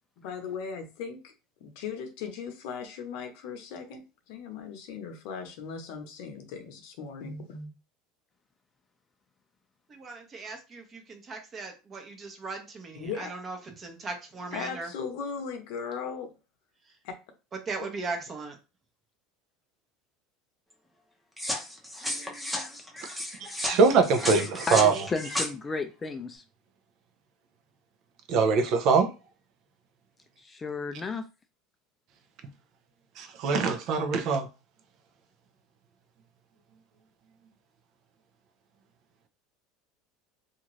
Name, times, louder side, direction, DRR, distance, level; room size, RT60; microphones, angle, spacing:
voice 1, 0.2-1.3 1.6-7.7 13.0-13.3 14.5-16.3 17.0-17.1, left 6 dB, 70° left, 0.8 m, -38 dB
voice 2, 9.9-14.9 16.9-17.0 17.5-18.6, right 3 dB, 30° right, 0.9 m, -38 dB
sound 1, 21.4-25.5, left 1 dB, 5° right, 0.8 m, -33 dB
voice 3, 23.4-25.1 28.3-29.1 33.2-34.5, right 5 dB, 55° right, 0.6 m, -23 dB
voice 4, 24.7-26.4 30.4-31.2, left 4 dB, 20° left, 0.4 m, -33 dB
2.5 x 2.4 x 3.1 m
supercardioid pair, 110°, 0 cm